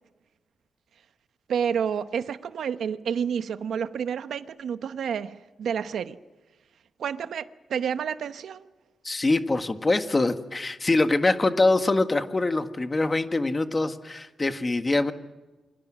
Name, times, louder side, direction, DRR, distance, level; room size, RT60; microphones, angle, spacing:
voice 1, 1.5-6.2 7.0-8.7, right 7 dB, 75° right, 11 dB, 0.9 m, -29 dB
voice 2, 9.0-15.1, left 2 dB, 25° left, 8 dB, 1.5 m, -24 dB
28.5 x 24.5 x 6.2 m, 1.2 s
wide cardioid pair, 130°, 0 cm